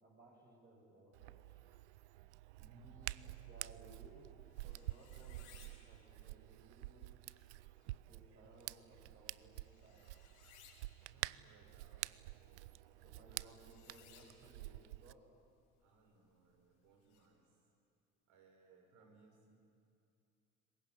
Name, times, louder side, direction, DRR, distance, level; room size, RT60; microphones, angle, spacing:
voice 1, 0.0-1.7 3.2-4.3 4.5-7.2 8.1-10.0 13.0-15.3, right 2 dB, 30° right, -3 dB, 6.9 m, -62 dB
Hands, 1.1-15.1, right 18 dB, 80° right, 0.5 m, -49 dB
voice 2, 2.6-3.4 11.0-12.8 13.3-13.6 15.8-17.6 18.3-19.5, right 2 dB, 60° right, 2 dB, 6.4 m, -65 dB
sound 1, 3.8-17.2, left 7 dB, 75° left, 5.6 m, -68 dB
23.0 x 20.5 x 9.7 m, 2.6 s
hypercardioid pair, 70°, 35 cm